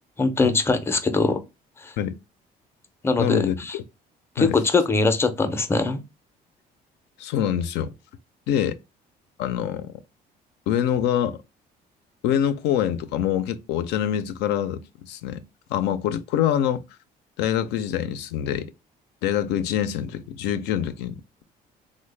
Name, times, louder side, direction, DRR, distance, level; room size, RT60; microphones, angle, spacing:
voice 1, 0.2-1.4 1.8-1.9 3.0-3.7 4.4-6.0, left 3 dB, 15° left, 0.4 m, -22 dB
voice 2, 3.2-3.8 4.4-4.6 7.2-7.9 8.5-8.8 9.4-9.9 10.7-11.4 12.2-15.4 15.7-16.8 17.4-18.7 19.2-21.4, left 10 dB, 85° left, 0.4 m, -25 dB
3.1 x 2.1 x 3.2 m
cardioid pair, 110°, 17 cm